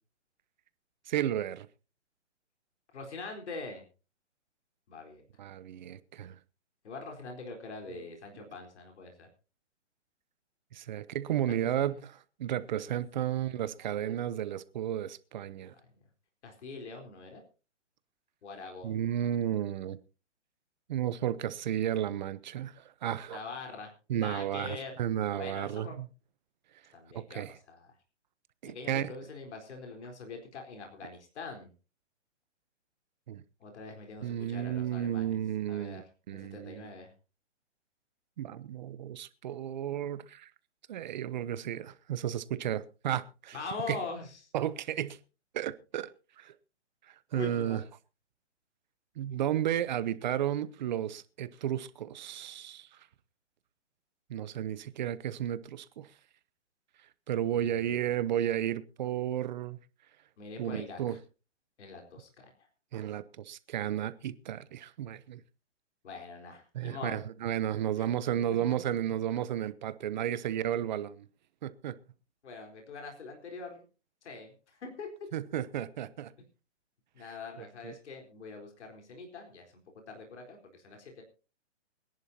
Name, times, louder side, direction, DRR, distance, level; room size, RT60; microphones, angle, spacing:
voice 1, 1.1-1.7 5.4-6.4 7.9-8.0 8.3-8.4 10.7-15.7 18.8-20.0 20.9-23.4 24.1-26.1 27.1-27.6 28.6-29.2 33.3-33.4 34.2-36.0 36.3-36.9 38.4-40.5 40.9-43.6 43.9-44.0 44.5-45.2 45.5-46.1 46.4-46.6 47.1-47.8 49.2-53.1 54.3-56.1 57.3-59.8 60.6-61.2 62.9-65.4 66.7-71.3 71.6-72.0 75.3-76.3 77.8-77.9, right 11 dB, 40° right, 0.8 m, -33 dB
voice 2, 2.9-3.8 4.9-5.2 6.8-9.3 11.8-12.0 15.9-16.0 16.4-17.4 18.4-19.0 23.3-24.9 25.4-26.0 26.9-27.9 28.6-31.7 33.6-35.4 35.7-36.0 36.3-37.1 43.5-44.4 47.3-47.8 57.5-58.0 60.4-61.2 61.8-62.7 66.0-67.2 68.0-68.1 68.5-68.6 72.4-73.8 74.2-75.1 77.1-79.7 80.1-81.2, left 4 dB, 65° left, 4.2 m, -43 dB
24.5 x 10.5 x 2.8 m
hypercardioid pair, 155°, 37 cm